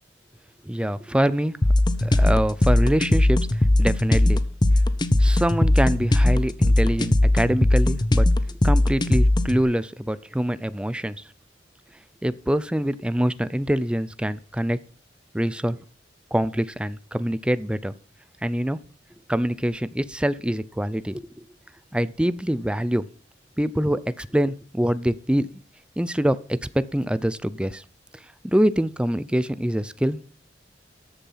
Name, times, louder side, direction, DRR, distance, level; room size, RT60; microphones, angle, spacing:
voice 1, 0.6-1.6 2.0-3.4 3.8-4.4 5.2-8.3 8.6-11.2 12.2-14.8 15.3-15.8 16.3-17.9 18.4-18.8 19.3-21.3 21.9-23.0 23.6-25.5 26.0-27.8 28.4-30.2, equal, 5° right, 16 dB, 0.5 m, -24 dB
sound 1, 1.6-9.6, left 1 dB, 25° left, 0.8 m, -19 dB
13.5 x 7.1 x 5.6 m, 0.40 s
head